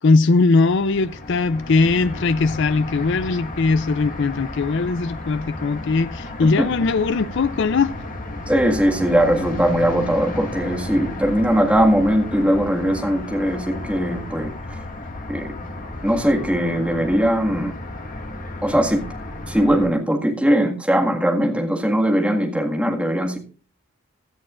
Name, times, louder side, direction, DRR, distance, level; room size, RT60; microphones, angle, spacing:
voice 1, 0.0-7.9, left 3 dB, 55° left, 0.4 m, -20 dB
sound 1, 0.6-19.9, left 2 dB, 35° left, 1.9 m, -33 dB
voice 2, 8.5-14.5 15.3-15.5 16.0-17.7 18.6-19.0 19.5-23.4, equal, 5° right, 1.7 m, -20 dB
16.5 x 11.0 x 2.5 m
head